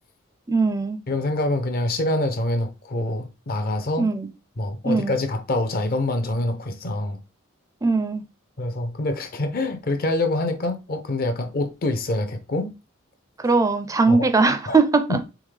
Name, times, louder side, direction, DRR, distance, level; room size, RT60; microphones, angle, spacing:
voice 1, 0.5-1.0 4.0-4.3 4.8-5.1 7.8-8.2 13.4-15.2, right 3 dB, 15° right, 0.4 m, -20 dB
voice 2, 1.1-4.1 4.6-7.2 8.6-12.7 14.1-14.3 14.7-14.8 15.1-15.3, left 2 dB, 45° left, 0.6 m, -25 dB
3.6 x 3.5 x 3.2 m
head